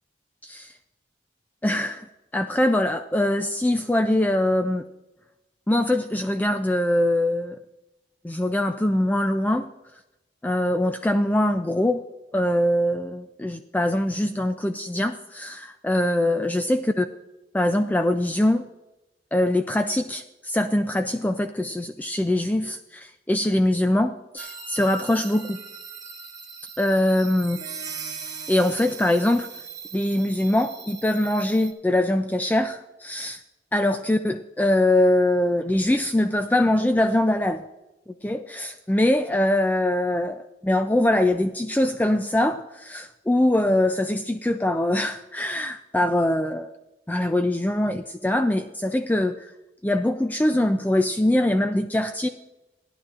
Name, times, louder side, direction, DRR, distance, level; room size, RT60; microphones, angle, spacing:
voice 1, 1.6-2.1 2.3-4.8 5.7-7.6 8.2-9.7 10.4-12.0 12.3-17.0 17.5-18.6 19.3-25.6 26.8-27.6 28.5-29.5 29.9-33.4 33.7-37.6 38.2-46.7 47.1-49.5 49.8-52.3, left 1 dB, 10° left, 7 dB, 0.3 m, -23 dB
sound 1, 24.4-31.7, right 6 dB, 20° right, 1.1 m, -39 dB
15.5 x 11.0 x 2.5 m, 0.98 s
head